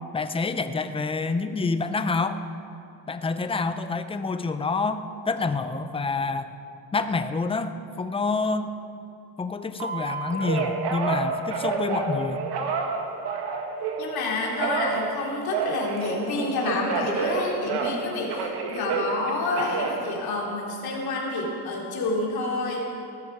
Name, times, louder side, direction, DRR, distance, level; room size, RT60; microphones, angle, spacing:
voice 1, 0.1-2.4 3.1-6.5 6.9-8.8 9.4-12.5, left 4 dB, 15° left, 10 dB, 0.5 m, -27 dB
Telephone, 9.8-14.1 14.6-18.0 18.3-20.8 21.3-21.8, right 5 dB, 70° right, 1.9 m, -29 dB
voice 2, 14.0-22.8, left 2 dB, 60° left, -2 dB, 3.7 m, -28 dB
18.0 x 13.5 x 4.8 m, 2.7 s
cardioid pair, 145°, 41 cm